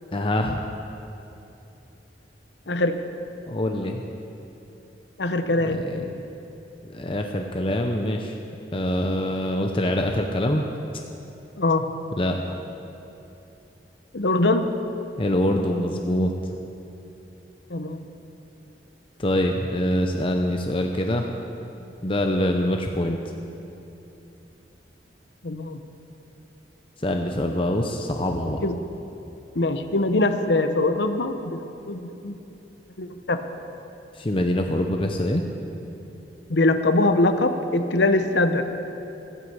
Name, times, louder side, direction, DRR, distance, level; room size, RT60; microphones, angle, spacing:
voice 1, 0.1-0.6 3.5-4.0 5.6-6.2 6.9-8.4 8.7-10.6 12.2-12.4 15.2-16.3 19.2-21.3 22.0-23.2 27.0-28.6 34.1-35.4, left 1 dB, 30° left, 3 dB, 0.7 m, -24 dB
voice 2, 2.7-3.0 5.2-5.8 11.6-11.8 14.1-14.7 17.7-18.1 25.4-25.8 28.6-28.8 29.5-32.4 33.0-33.4 36.5-38.6, left 2 dB, 80° left, 8 dB, 0.9 m, -22 dB
15.0 x 9.9 x 8.0 m, 2.9 s
head